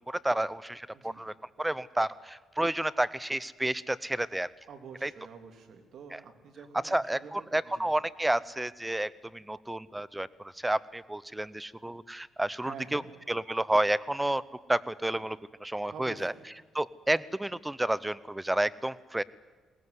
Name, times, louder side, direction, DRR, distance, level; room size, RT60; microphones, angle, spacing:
voice 1, 0.1-4.5 5.0-5.1 6.1-6.2 6.8-13.0 13.3-14.4 14.7-16.3 16.7-19.2, right 1 dB, 10° right, 19 dB, 0.7 m, -30 dB
voice 2, 0.9-1.2 4.7-7.9 12.6-13.1 15.9-16.5, right 6 dB, 65° right, 6 dB, 3.1 m, -47 dB
21.5 x 18.5 x 9.6 m, 1.3 s
cardioid pair, 90°, 0 cm